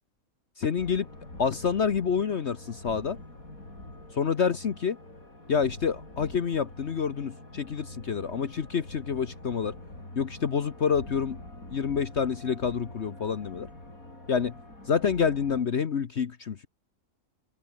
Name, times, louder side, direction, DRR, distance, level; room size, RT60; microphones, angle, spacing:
voice 1, 0.6-1.1 1.4-3.2 4.1-5.0 5.5-9.8 10.2-11.4 11.7-13.7 14.3-14.6 14.9-16.7, left 6 dB, 50° left, 1.3 m, -28 dB
sound 1, 0.8-15.6, left 2 dB, 70° left, 8.2 m, -45 dB
open air
omnidirectional pair, 1.5 m